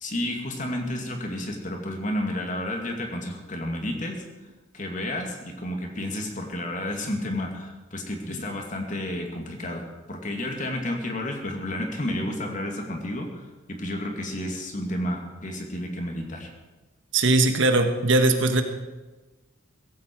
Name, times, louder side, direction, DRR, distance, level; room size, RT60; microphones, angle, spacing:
voice 1, 0.0-4.2 4.7-16.5, left 1 dB, 40° left, 2 dB, 2.4 m, -31 dB
voice 2, 17.1-18.6, right 2 dB, 70° right, 7 dB, 1.5 m, -20 dB
17.0 x 15.5 x 4.7 m, 1.2 s
head